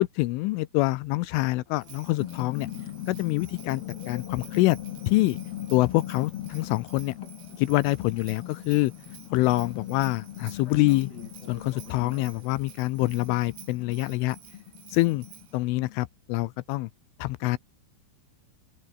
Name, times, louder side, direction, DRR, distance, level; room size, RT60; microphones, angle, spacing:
voice 1, 0.0-2.7 3.1-4.8 5.1-5.4 5.7-7.1 7.6-8.9 9.3-11.1 11.5-14.4 14.9-15.3 15.5-16.9 17.2-17.6, left 20 dB, 80° left, 3.2 m, -25 dB
sound 1, 1.8-16.0, left 12 dB, 65° left, 3.0 m, -40 dB
Bell, 1.8-15.6, right 13 dB, 85° right, 4.8 m, -52 dB
sound 2, 1.9-13.7, left 5 dB, 35° left, 1.7 m, -53 dB
open air
omnidirectional pair, 5.7 m